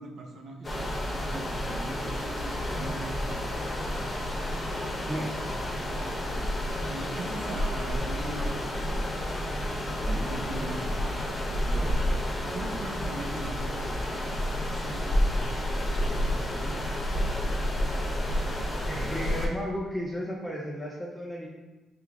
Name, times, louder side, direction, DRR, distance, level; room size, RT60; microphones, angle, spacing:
voice 1, 0.0-3.6 5.8-6.1 6.9-9.0 10.1-10.9 11.5-12.1 12.5-16.6, right 2 dB, 65° right, 1 dB, 0.7 m, -41 dB
sound 1, 0.6-19.5, left 1 dB, 25° left, 1.0 m, -30 dB
voice 2, 18.9-21.5, equal, 5° left, -4 dB, 0.6 m, -34 dB
4.9 x 3.4 x 2.4 m, 1.1 s
cardioid pair, 90°, 0 cm